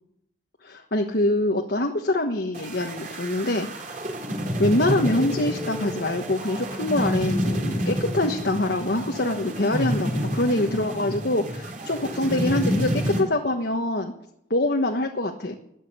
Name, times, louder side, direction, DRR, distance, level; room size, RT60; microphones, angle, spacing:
voice 1, 0.6-4.1 4.6-14.1 14.5-15.6, left 1 dB, 60° left, 3 dB, 1.3 m, -25 dB
sound 1, 2.5-13.2, equal, 45° right, 3.8 m, -29 dB
13.5 x 11.0 x 8.4 m, 0.77 s
head